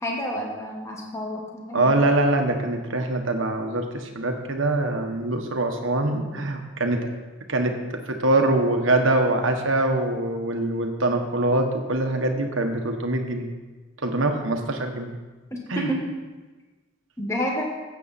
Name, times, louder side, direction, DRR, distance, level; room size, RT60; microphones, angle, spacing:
voice 1, 0.0-1.9 15.5-16.0 17.2-17.7, equal, 15° left, -1 dB, 1.4 m, -29 dB
voice 2, 1.7-7.0 7.5-7.7 8.1-13.5 14.0-15.2 15.7-15.9, right 2 dB, 70° right, 4 dB, 1.3 m, -23 dB
14.0 x 8.2 x 4.2 m, 1.3 s
head